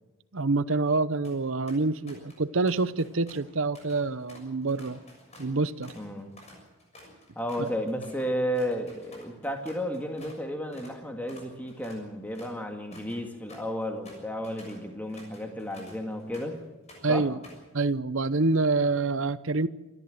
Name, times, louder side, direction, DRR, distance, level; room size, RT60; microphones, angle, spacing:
voice 1, 0.3-5.0 5.4-5.9 7.6-7.7 17.0-17.4 17.7-19.7, right 3 dB, 60° right, 15 dB, 0.9 m, -26 dB
sound 1, 1.2-1.4 1.7-2.4 2.7-10.4 10.7-11.0 11.3-16.6 16.9-17.7, left 1 dB, 30° left, 6.6 m, -51 dB
voice 2, 5.9-6.3 7.4-16.6 17.1-17.3, equal, 10° left, 3 dB, 2.1 m, -33 dB
27.5 x 13.5 x 7.9 m, 1.1 s
head